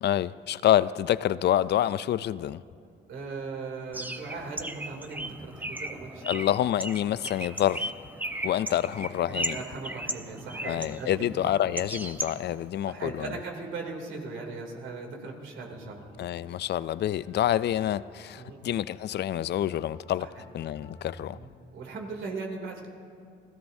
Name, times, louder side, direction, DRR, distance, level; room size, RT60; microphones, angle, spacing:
voice 1, 0.0-2.6 6.2-7.9 8.4-9.6 10.7-13.3 16.2-20.3 20.5-21.4, left 11 dB, 60° left, 0.4 m, -27 dB
voice 2, 3.1-6.4 9.3-11.1 11.6-11.7 12.9-16.1 18.4-18.6 20.2-20.3 21.3-22.9, right 4 dB, 75° right, 2.9 m, -39 dB
Bird, 3.9-12.7, right 1 dB, 10° right, 0.8 m, -37 dB
sound 1, 15.7-21.4, left 2 dB, 25° left, 3.0 m, -52 dB
29.0 x 17.0 x 2.7 m
cardioid pair, 90°, 20 cm